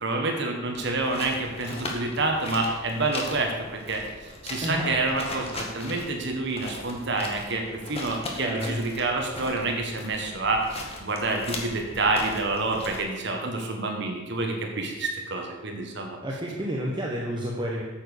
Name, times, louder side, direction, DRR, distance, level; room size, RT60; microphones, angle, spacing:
voice 1, 0.0-7.6 7.9-16.2, right 2 dB, 60° right, 2 dB, 1.6 m, -28 dB
sound 1, 0.7-13.0, left 2 dB, 30° left, 1.6 m, -39 dB
voice 2, 4.6-5.0 8.4-8.8 16.2-17.8, equal, 25° right, -3 dB, 1.2 m, -30 dB
9.0 x 7.3 x 6.7 m, 1.3 s
head